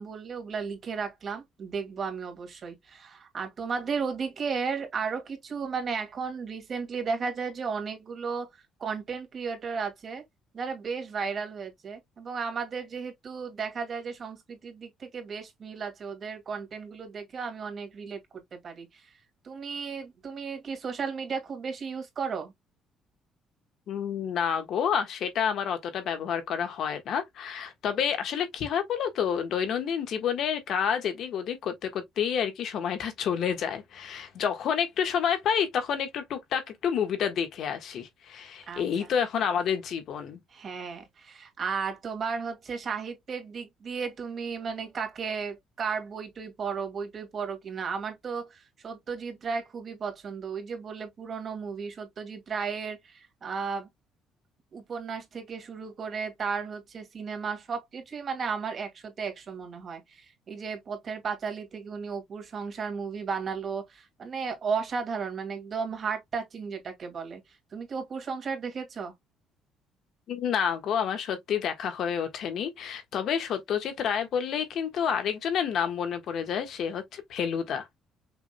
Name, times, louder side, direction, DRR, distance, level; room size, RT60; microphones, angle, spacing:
voice 1, 0.0-8.5 8.8-10.2 10.5-18.2 18.5-19.0 19.4-22.5 38.7-39.1 40.5-53.9 54.7-67.4 67.7-69.1, right 5 dB, 40° right, 2.1 m, -34 dB
voice 2, 23.9-40.4 70.3-77.9, left 8 dB, 60° left, 1.5 m, -29 dB
6.0 x 3.7 x 2.3 m
cardioid pair, 125°, 0 cm